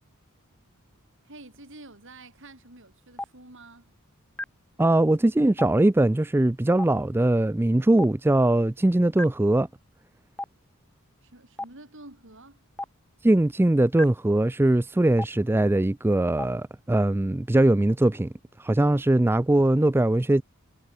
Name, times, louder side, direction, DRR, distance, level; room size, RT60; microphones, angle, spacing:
voice 1, 1.2-3.9 11.2-12.6 18.9-19.0, right 2 dB, 55° right, 5.7 m, -48 dB
Stream, 3.2-3.3 4.4-4.5 5.6-5.7 6.8-6.9 8.0-8.1 9.2-9.3 10.4-10.5 11.6-11.7 12.8-12.9 14.0-14.1 15.2-15.3 16.4-16.5, left 1 dB, 5° left, 1.2 m, -33 dB
voice 2, 4.8-9.7 13.2-18.3 18.6-20.4, right 1 dB, 10° right, 0.3 m, -21 dB
head